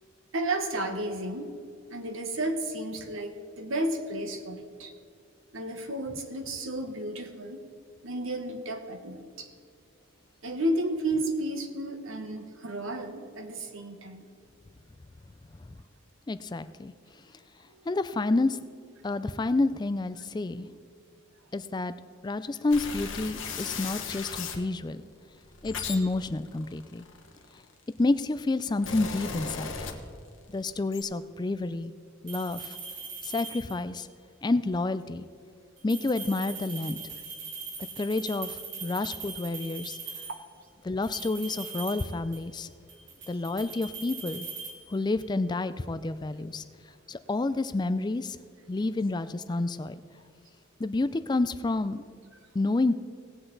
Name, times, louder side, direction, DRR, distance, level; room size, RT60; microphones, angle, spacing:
voice 1, 0.3-1.5 1.9-4.9 5.5-7.6 8.0-9.5 10.4-14.2, right 1 dB, 75° right, 6 dB, 1.2 m, -32 dB
voice 2, 16.3-16.9 17.9-18.6 19.0-20.7 21.5-21.9 22.2-25.0 25.6-27.0 28.0-29.7 30.5-31.9 32.2-32.8 33.2-34.1 34.4-35.3 35.8-37.0 38.0-40.0 40.8-42.7 43.3-44.5 44.9-46.6 47.1-48.4 48.7-50.0 50.8-52.1 52.5-52.9, left 2 dB, 20° left, 12 dB, 0.3 m, -29 dB
sound 1, 22.7-24.6 25.3-27.7 28.4-30.4 30.7-31.0, left 5 dB, 70° left, 1.3 m, -37 dB
sound 2, 32.3-34.0 35.8-40.5 41.0-42.6 42.9-45.4, right 5 dB, 60° right, 1.6 m, -41 dB
18.0 x 7.8 x 3.9 m, 2.3 s
head